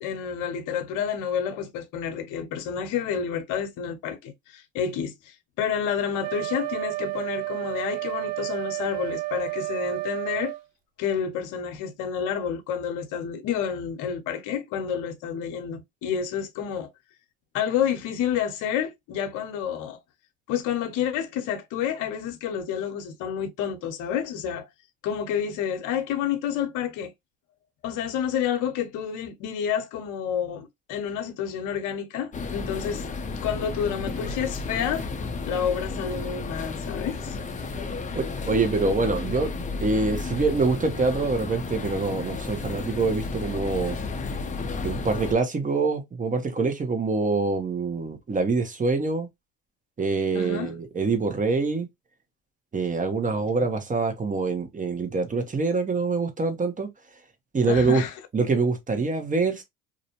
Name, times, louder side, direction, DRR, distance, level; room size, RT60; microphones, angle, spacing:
voice 1, 0.0-10.5 11.0-16.9 17.5-20.0 20.5-24.7 25.0-27.1 27.8-33.0 33.4-35.1 35.5-37.4 50.3-50.7 57.7-58.1, left 8 dB, 70° left, 0.8 m, -29 dB
Wind instrument woodwind instrument, 6.2-10.6, right 20 dB, 65° right, 0.5 m, -31 dB
sound 1, 32.3-45.3, left 4 dB, 25° left, 0.6 m, -32 dB
voice 2, 38.1-44.0 44.8-49.3 50.0-51.9 52.7-56.9 57.5-58.0 58.3-59.6, right 4 dB, 25° right, 0.9 m, -25 dB
2.5 x 2.1 x 2.9 m
supercardioid pair, 80°, 32 cm